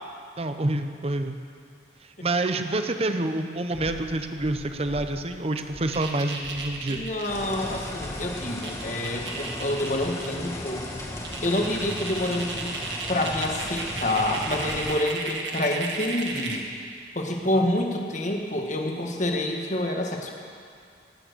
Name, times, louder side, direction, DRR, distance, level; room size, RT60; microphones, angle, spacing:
voice 1, 0.4-1.3 2.2-7.0 17.5-17.6, right 2 dB, 35° right, 8 dB, 0.8 m, -27 dB
sound 1, 3.7-5.3 5.6-8.4, equal, 80° left, 4.2 m, -44 dB
sound 2, 5.9-7.3 8.4-8.5 8.6-10.3 10.7-10.8 11.2-16.7, right 4 dB, 80° right, 1.7 m, -34 dB
voice 2, 6.9-10.9 11.4-12.7 13.1-16.6 17.1-20.3, left 1 dB, 40° left, 2 dB, 1.6 m, -27 dB
sound 3, 7.3-15.0, left 1 dB, 15° left, 1.5 m, -36 dB
18.0 x 8.8 x 6.8 m, 2.3 s
head